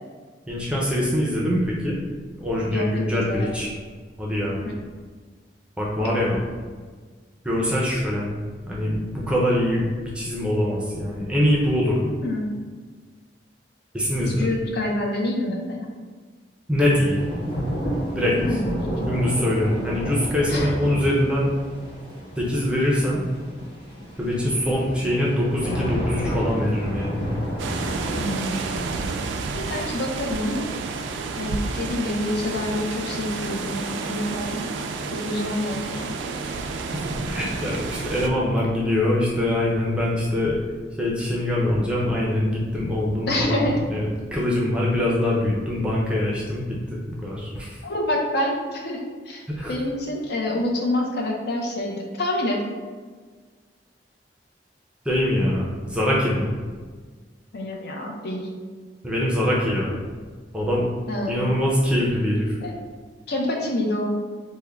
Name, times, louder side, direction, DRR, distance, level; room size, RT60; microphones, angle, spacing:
voice 1, 0.5-2.0 2.4-3.7 4.2-4.6 5.8-6.4 7.4-8.3 8.7-12.1 13.9-14.5 16.7-17.2 18.1-18.4 19.1-21.5 22.4-23.2 24.2-27.2 36.9-40.6 41.0-44.0 44.3-47.8 49.5-49.7 55.0-56.5 59.0-60.0 60.5-60.8 61.3-62.6, left 1 dB, 5° right, -5 dB, 0.5 m, -23 dB
voice 2, 3.1-3.5 6.0-6.1 12.2-12.5 14.2-15.9 18.4-18.7 20.5-20.7 28.1-28.6 29.5-30.7 31.4-34.6 35.1-36.1 43.3-43.8 47.8-49.4 49.7-52.6 57.5-58.4 61.1-61.4 62.6-62.7 63.3-64.2, left 1 dB, 65° left, 0 dB, 0.6 m, -27 dB
sound 1, 16.9-29.1, equal, 30° left, 0.9 m, -31 dB
sound 2, 27.6-38.3, right 4 dB, 90° right, 0.3 m, -30 dB
3.5 x 2.1 x 3.4 m, 1.5 s
head